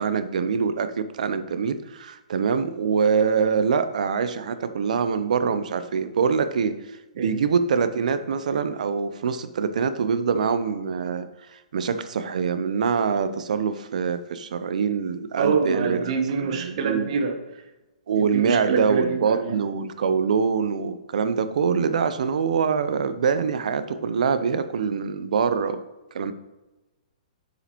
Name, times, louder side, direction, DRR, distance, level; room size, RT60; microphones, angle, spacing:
voice 1, 0.0-6.8 7.1-11.3 11.7-16.1 16.4-17.1 18.1-25.8 26.1-26.3, right 6 dB, 70° right, 11 dB, 0.7 m, -24 dB
voice 2, 15.4-17.4 18.2-19.6, right 5 dB, 55° right, 6 dB, 1.1 m, -26 dB
7.0 x 6.7 x 3.0 m, 1.1 s
hypercardioid pair, 130°, 4 cm